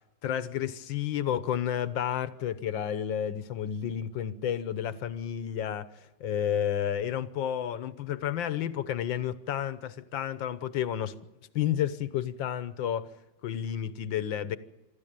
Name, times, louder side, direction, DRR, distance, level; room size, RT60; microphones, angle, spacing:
voice 1, 0.2-11.2 11.5-13.1 13.4-14.6, left 10 dB, 85° left, 1.7 m, -31 dB
26.0 x 13.5 x 8.9 m
omnidirectional pair, 2.0 m